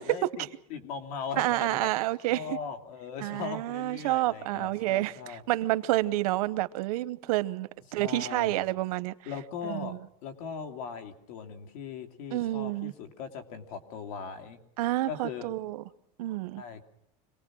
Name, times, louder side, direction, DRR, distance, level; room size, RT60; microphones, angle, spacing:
voice 1, 0.0-5.4 8.0-8.6 9.2-14.6 15.1-15.5 16.5-16.8, left 6 dB, 75° left, 3.0 m, -39 dB
voice 2, 1.4-2.6 3.2-9.1 9.6-10.0 12.3-12.9 14.8-15.8 16.2-16.6, right 17 dB, 85° right, 1.0 m, -29 dB
26.0 x 19.0 x 6.2 m
supercardioid pair, 155°, 19 cm